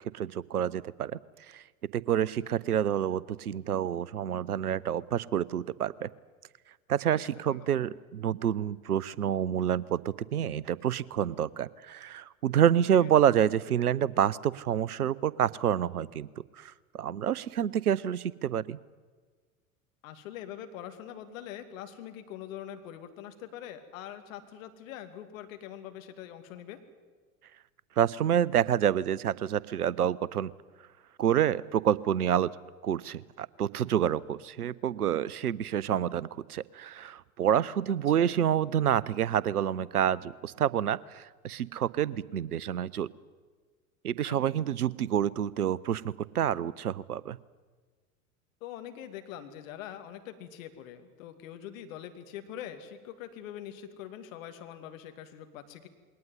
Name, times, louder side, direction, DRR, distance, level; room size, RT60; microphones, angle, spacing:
voice 1, 0.1-1.2 1.5-1.6 1.9-6.1 6.9-16.3 16.6-18.8 28.0-30.5 31.2-32.5 32.8-43.1 44.0-47.4, right 10 dB, 85° right, 22 dB, 0.8 m, -28 dB
voice 2, 20.0-26.8 38.2-38.4 44.3-44.6 48.6-55.9, left 10 dB, 60° left, 8 dB, 2.6 m, -43 dB
21.5 x 18.5 x 9.6 m, 1.4 s
figure-of-eight pair, 85°, 44 cm